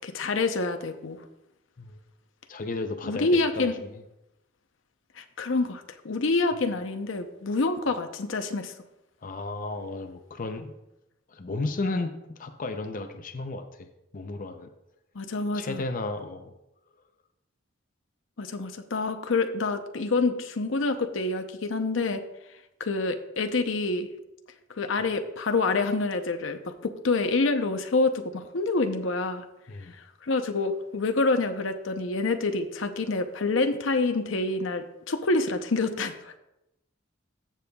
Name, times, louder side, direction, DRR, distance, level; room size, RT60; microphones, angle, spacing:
voice 1, 0.0-1.2 3.1-3.7 5.2-8.7 15.1-15.8 18.4-22.2 22.8-24.1 24.8-29.4 29.9-36.3, left 3 dB, 80° left, 7 dB, 0.7 m, -27 dB
voice 2, 2.5-3.7 9.2-10.7 11.3-13.9 14.1-14.7 15.5-16.5 29.7-29.9, left 2 dB, 45° left, 7 dB, 0.6 m, -33 dB
14.5 x 6.9 x 2.3 m, 0.90 s
head